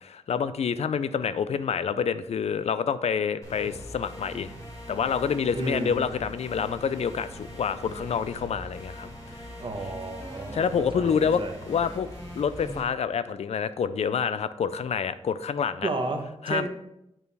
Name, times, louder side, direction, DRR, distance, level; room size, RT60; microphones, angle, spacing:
voice 1, 0.0-4.5 4.9-9.1 10.5-12.1 12.4-15.9 16.4-16.7, left 7 dB, 80° left, 14 dB, 0.4 m, -27 dB
sound 1, 3.4-12.8, equal, 30° left, 2.1 m, -41 dB
voice 2, 5.5-6.0 9.6-11.6 15.8-16.7, right 3 dB, 55° right, 3 dB, 0.9 m, -32 dB
8.6 x 4.6 x 3.4 m, 0.82 s
wide cardioid pair, 130°, 11 cm